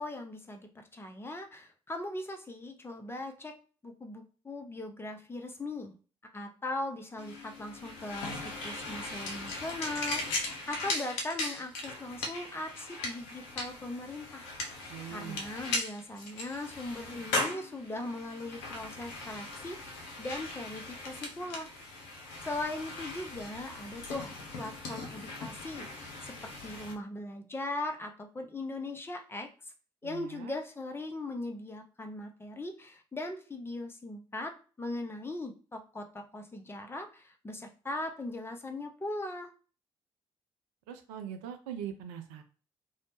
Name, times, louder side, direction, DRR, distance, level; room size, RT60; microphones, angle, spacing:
voice 1, 0.0-3.5 3.8-5.9 6.3-14.5 15.1-21.7 22.4-29.5 30.0-34.5 34.8-39.5, left 2 dB, 15° left, 5 dB, 0.5 m, -39 dB
sound 1, 7.2-26.9, left 2 dB, 70° left, 0.5 m, -39 dB
voice 2, 14.9-15.4 30.0-30.5 40.9-42.4, right 9 dB, 70° right, 6 dB, 0.4 m, -41 dB
2.6 x 2.0 x 3.0 m, 0.37 s
figure-of-eight pair, 40°, 14 cm